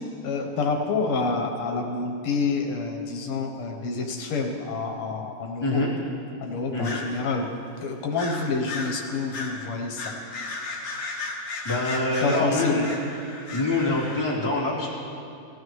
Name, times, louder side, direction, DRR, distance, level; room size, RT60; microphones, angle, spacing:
voice 1, 0.2-5.8 6.4-7.5 7.8-10.1 12.2-12.9, left 4 dB, 85° left, 2 dB, 1.9 m, -28 dB
voice 2, 5.6-5.9 6.7-7.0 11.6-12.9 13.5-14.9, left 2 dB, 10° left, -8 dB, 2.5 m, -25 dB
sound 1, 6.8-7.1 8.2-9.0 9.3-9.6 10.0-14.2, left 3 dB, 55° left, 1.8 m, -34 dB
16.5 x 13.5 x 3.2 m, 2.7 s
omnidirectional pair, 2.4 m